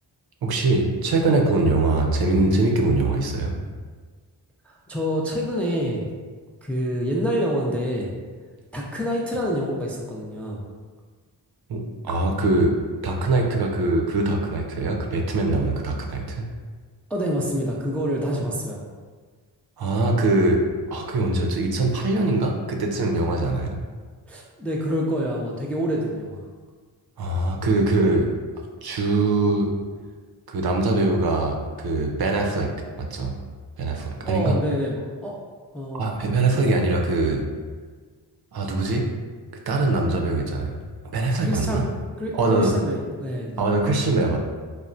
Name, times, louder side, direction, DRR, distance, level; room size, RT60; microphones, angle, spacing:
voice 1, 0.4-3.5 11.7-12.8 13.0-16.5 19.8-20.6 20.9-23.8 27.2-28.3 28.8-29.7 30.5-32.7 33.0-33.3 33.8-34.6 36.0-37.5 38.5-39.0 39.7-40.8 41.1-41.9 42.3-42.7 43.6-44.4, right 2 dB, 55° right, 1 dB, 0.5 m, -22 dB
voice 2, 4.7-6.0 6.6-8.1 8.7-10.6 17.1-18.9 24.3-26.4 28.0-28.2 34.2-35.4 35.7-36.0 36.5-36.7 41.4-41.8 42.2-43.6, equal, 5° left, -2 dB, 0.3 m, -27 dB
3.1 x 2.1 x 2.5 m, 1.5 s
cardioid pair, 45°, 44 cm